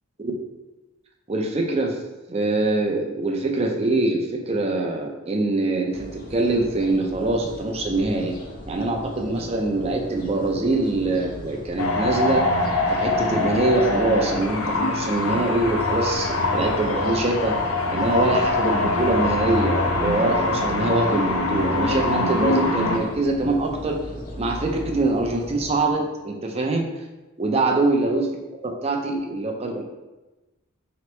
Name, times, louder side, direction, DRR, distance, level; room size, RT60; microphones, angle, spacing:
voice 1, 1.3-2.0 2.3-8.3 8.6-12.5 12.9-17.5 17.9-24.0 24.4-26.9 27.4-28.3 28.6-29.8, right 2 dB, 30° right, 1 dB, 0.4 m, -23 dB
sound 1, 5.9-25.7, left 1 dB, 40° left, 0.6 m, -37 dB
sound 2, 11.8-23.0, left 2 dB, 85° left, 0.6 m, -24 dB
4.3 x 3.0 x 3.0 m, 1.1 s
head